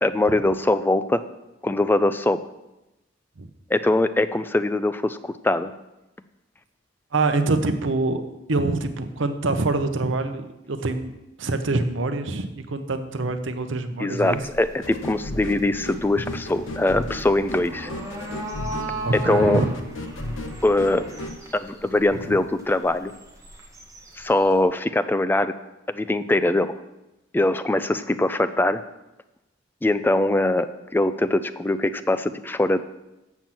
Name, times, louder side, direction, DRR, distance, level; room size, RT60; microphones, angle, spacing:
voice 1, 0.0-1.2 1.6-2.4 3.7-5.7 14.0-17.9 19.1-19.6 20.6-21.0 21.5-23.1 24.2-25.5 25.9-26.7 27.3-28.8 29.8-30.7 30.9-32.8, left 2 dB, 10° left, 11 dB, 0.3 m, -22 dB
voice 2, 7.1-8.2 8.5-11.1 11.4-14.4 16.2-16.3 19.0-19.7 22.1-22.4, right 2 dB, 75° right, 9 dB, 0.7 m, -25 dB
sound 1, 14.2-24.6, right 1 dB, 15° right, 1.3 m, -38 dB
sound 2, 14.8-21.4, left 1 dB, 85° left, 1.1 m, -34 dB
7.2 x 5.9 x 7.5 m, 0.97 s
head